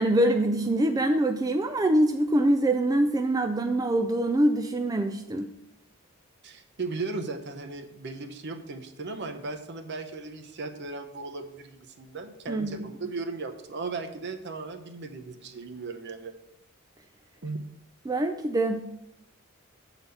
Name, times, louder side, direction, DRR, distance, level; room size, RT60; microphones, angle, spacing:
voice 1, 0.0-5.5 12.5-12.7 18.1-18.8, right 1 dB, 15° right, 6 dB, 0.3 m, -24 dB
voice 2, 6.4-16.3 17.4-17.6, right 3 dB, 55° right, 7 dB, 0.8 m, -36 dB
8.0 x 4.0 x 6.9 m, 0.85 s
head